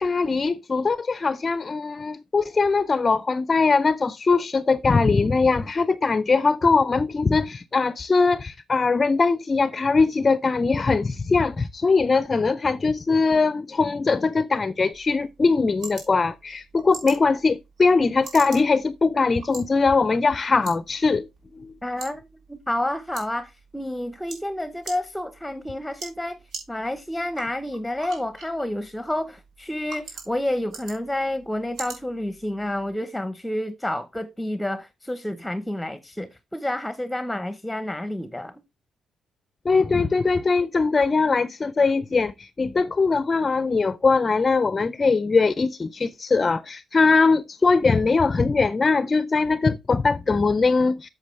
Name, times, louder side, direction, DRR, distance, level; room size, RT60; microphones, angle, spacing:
voice 1, 0.0-21.3 21.6-21.7 39.6-51.1, left 4 dB, 30° left, 0.4 m, -21 dB
sound 1, 14.9-32.9, right 4 dB, 75° right, 3.5 m, -44 dB
voice 2, 21.8-22.2 22.5-26.4 26.7-38.5, left 1 dB, 5° left, 0.8 m, -29 dB
8.1 x 6.8 x 3.1 m
cardioid pair, 90°, 0 cm